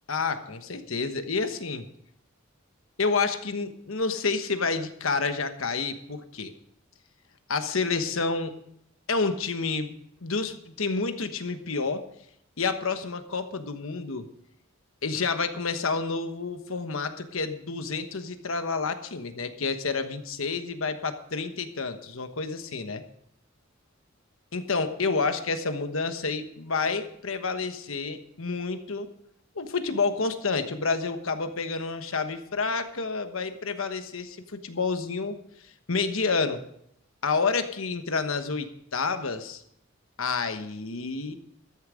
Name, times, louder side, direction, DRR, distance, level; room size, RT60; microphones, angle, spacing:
voice 1, 0.1-1.9 3.0-6.5 7.5-8.5 9.1-9.9 10.2-12.1 12.6-14.3 15.0-23.0 24.5-29.1 29.5-35.4 35.9-36.6 37.2-39.6 40.2-41.4, left 4 dB, 80° left, 9 dB, 1.2 m, -29 dB
13.5 x 10.5 x 5.0 m, 0.71 s
head